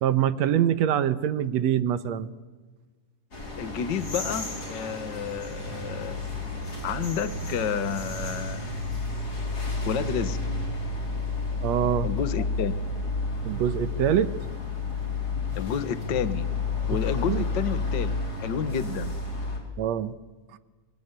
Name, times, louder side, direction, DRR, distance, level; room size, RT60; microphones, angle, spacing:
voice 1, 0.0-2.3 11.6-12.1 13.4-14.3 17.3-17.4 19.8-20.1, right 10 dB, 65° right, 13 dB, 2.0 m, -24 dB
sound 1, 3.3-19.6, left 3 dB, 30° left, 5.0 m, -31 dB
voice 2, 3.6-6.2 6.8-8.8 9.8-10.4 12.0-12.8 15.5-16.5 16.9-19.2, left 8 dB, 50° left, 12 dB, 1.5 m, -30 dB
24.0 x 23.5 x 9.9 m, 1.3 s
omnidirectional pair, 3.7 m